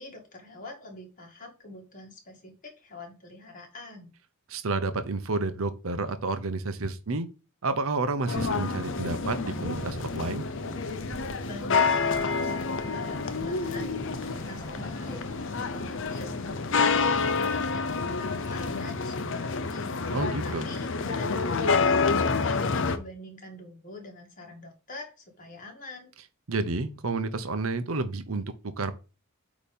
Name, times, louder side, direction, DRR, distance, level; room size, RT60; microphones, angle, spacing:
voice 1, 0.0-4.1 11.4-26.1, left 2 dB, 35° left, 2.0 m, -45 dB
voice 2, 4.5-7.3 7.6-10.4 20.1-20.7 26.5-28.4 28.8-28.9, right 3 dB, 65° right, 0.8 m, -30 dB
sound 1, 8.3-23.0, left 4 dB, 60° left, 0.7 m, -28 dB
sound 2, 8.4-16.7, right 3 dB, 40° right, 0.5 m, -44 dB
Laughter, 13.0-18.8, equal, 15° left, 1.2 m, -50 dB
8.4 x 3.0 x 5.3 m
head